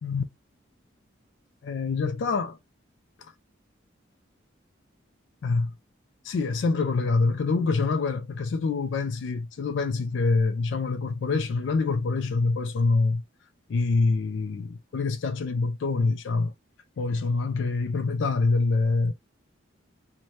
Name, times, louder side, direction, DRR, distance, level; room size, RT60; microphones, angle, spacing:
voice 1, 1.6-2.6 5.4-5.7 6.2-13.2 13.7-16.5 17.0-19.1, left 3 dB, 65° left, 0.3 m, -25 dB
2.7 x 2.1 x 3.1 m
head